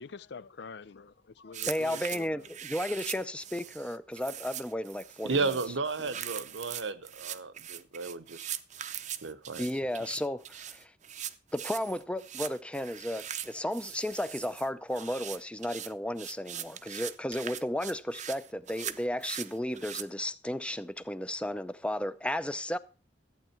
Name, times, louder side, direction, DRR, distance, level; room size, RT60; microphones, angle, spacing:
voice 1, 0.0-2.5, left 4 dB, 65° left, 0.5 m, -46 dB
sound 1, 1.5-20.0, right 10 dB, 40° right, 0.6 m, -41 dB
voice 2, 1.7-5.5 9.6-10.9 11.5-22.8, left 1 dB, 5° left, 0.5 m, -34 dB
voice 3, 5.2-8.5 9.2-9.7, right 4 dB, 90° right, 1.0 m, -33 dB
14.0 x 8.9 x 4.5 m
head